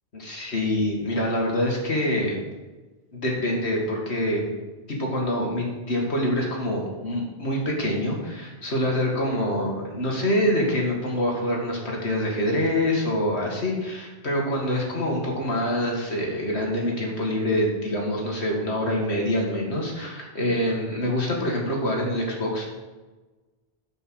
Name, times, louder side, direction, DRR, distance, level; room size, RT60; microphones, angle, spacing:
voice 1, 0.1-2.4 3.1-4.5 4.9-22.7, left 1 dB, 85° left, -1 dB, 2.2 m, -25 dB
9.8 x 5.3 x 6.2 m, 1.2 s
omnidirectional pair, 1.1 m